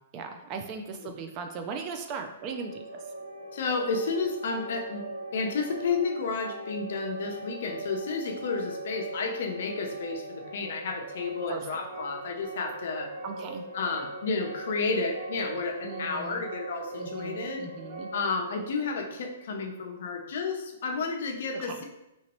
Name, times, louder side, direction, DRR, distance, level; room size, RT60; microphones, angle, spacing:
voice 1, 0.1-2.8 11.5-11.6 13.2-13.6 15.8-16.4 17.0-18.1 21.5-21.8, right 5 dB, 30° right, 5 dB, 0.3 m, -38 dB
sound 1, 2.4-20.2, right 2 dB, 55° right, 1.3 m, -40 dB
voice 2, 3.5-5.1 5.3-13.1 13.7-17.7 18.1-21.8, left 4 dB, 65° left, 4 dB, 0.5 m, -31 dB
2.9 x 2.7 x 3.0 m, 0.91 s
hypercardioid pair, 155°, 0 cm